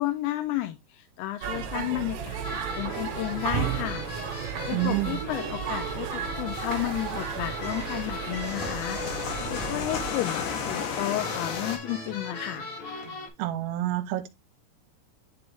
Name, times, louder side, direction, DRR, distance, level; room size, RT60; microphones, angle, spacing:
voice 1, 0.0-12.7, left 15 dB, 85° left, 2.5 m, -33 dB
sound 1, 1.4-10.1, right 8 dB, 70° right, 2.2 m, -34 dB
sound 2, 2.4-13.3, left 2 dB, 50° left, 1.6 m, -38 dB
voice 2, 4.7-5.2 13.4-14.3, right 14 dB, 85° right, 2.7 m, -28 dB
sound 3, 6.5-11.8, left 6 dB, 65° left, 2.2 m, -34 dB
10.5 x 3.5 x 3.3 m
omnidirectional pair, 4.8 m